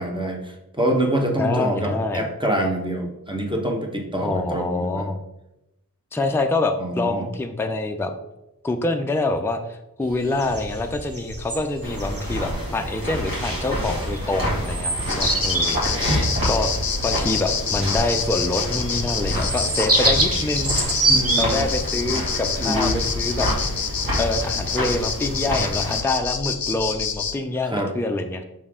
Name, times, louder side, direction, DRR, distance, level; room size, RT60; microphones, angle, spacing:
voice 1, 0.0-5.1 6.8-7.3 21.1-21.6 22.6-23.0 27.7-27.9, right 1 dB, 15° right, 1 dB, 1.0 m, -25 dB
voice 2, 1.4-2.2 4.2-5.2 6.1-8.1 8.6-16.7 17.0-20.8 21.4-23.5 24.2-28.4, left 2 dB, 5° left, 5 dB, 0.4 m, -26 dB
sound 1, 10.0-23.7, right 2 dB, 40° right, 1.0 m, -27 dB
sound 2, 11.8-26.0, equal, 65° right, 2.1 m, -28 dB
sound 3, 15.1-27.4, left 6 dB, 70° left, 0.5 m, -27 dB
5.8 x 4.5 x 3.6 m, 0.91 s
wide cardioid pair, 55°, 36 cm